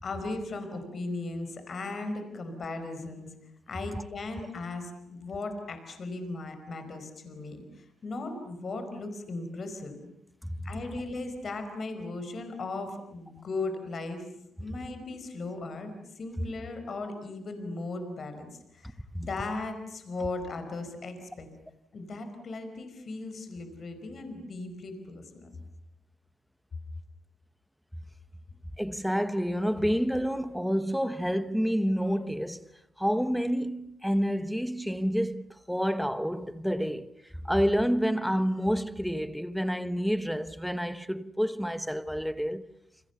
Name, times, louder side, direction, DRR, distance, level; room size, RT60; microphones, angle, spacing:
voice 1, 0.0-3.3 3.7-10.0 10.6-14.3 14.6-21.5 21.9-25.5, left 3 dB, 40° left, 4.9 m, -37 dB
voice 2, 28.8-32.7 33.0-37.1 37.4-42.7, equal, ahead, 1.1 m, -28 dB
29.0 x 29.0 x 7.0 m
wide cardioid pair, 170°, 0 cm